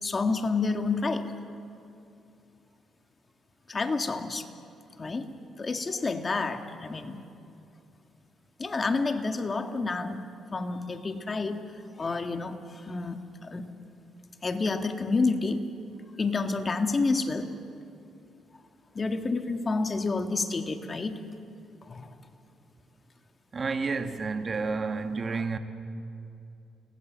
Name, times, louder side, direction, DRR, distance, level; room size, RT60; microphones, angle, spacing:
voice 1, 0.0-1.3 3.7-4.5 5.0-7.3 8.6-10.2 10.5-11.6 12.0-13.7 14.4-15.6 16.2-17.5 19.0-21.2 21.9-22.1, left 3 dB, 30° left, 1.8 m, -29 dB
voice 2, 23.5-25.6, right 4 dB, 35° right, 1.5 m, -30 dB
29.5 x 21.0 x 7.5 m
cardioid pair, 90°, 0 cm